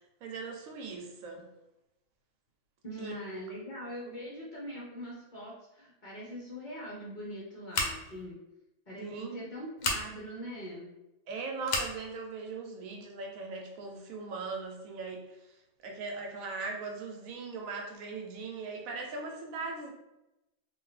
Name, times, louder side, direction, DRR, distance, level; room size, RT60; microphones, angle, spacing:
voice 1, 0.2-1.5 3.0-3.1 9.0-9.5 11.3-15.6 15.8-19.9, right 4 dB, 85° right, 2 dB, 1.1 m, -39 dB
voice 2, 2.8-8.4 8.9-10.9, equal, 45° left, -5 dB, 0.7 m, -42 dB
Scissors, 7.7-8.2 9.8-10.0 11.6-11.9, left 3 dB, 90° left, 1.1 m, -31 dB
2.8 x 2.4 x 3.2 m, 0.95 s
omnidirectional pair, 1.4 m